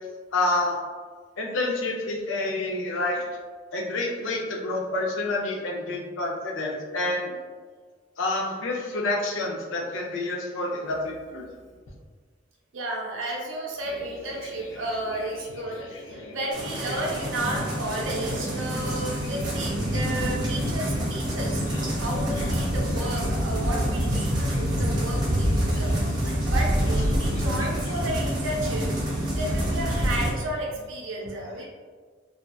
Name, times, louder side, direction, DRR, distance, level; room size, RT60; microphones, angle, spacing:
voice 1, 0.3-0.8 1.4-3.2 3.7-7.4 8.2-11.5 15.8-16.4 25.7-25.8, left 2 dB, 80° left, -1 dB, 0.5 m, -28 dB
voice 2, 12.7-15.8 16.1-21.6 22.0-28.9 29.3-31.7, right 1 dB, 85° right, -2 dB, 0.6 m, -33 dB
sound 1, 16.5-30.3, equal, 20° right, 0.5 m, -26 dB
2.7 x 2.2 x 2.2 m, 1.6 s
head